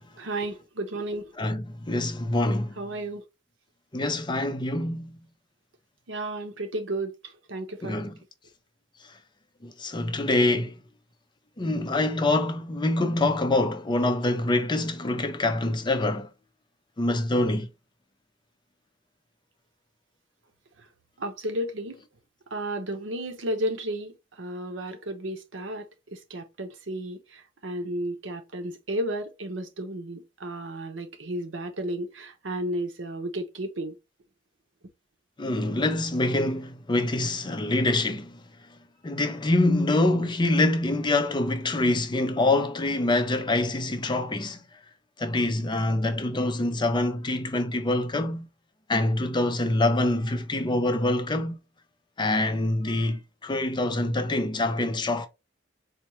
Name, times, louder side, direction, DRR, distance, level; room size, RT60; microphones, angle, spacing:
voice 1, 0.2-1.3 2.8-3.2 6.1-8.0 21.2-22.0 22.5-34.0, right 1 dB, 85° right, 0.8 m, -33 dB
voice 2, 1.4-2.7 3.9-5.1 7.8-8.1 9.6-10.8 11.6-16.3 17.0-17.7 35.4-38.4 39.0-44.6 45.2-48.5 48.9-51.6 52.2-55.3, left 2 dB, 25° left, 0.5 m, -25 dB
4.3 x 2.3 x 3.0 m
head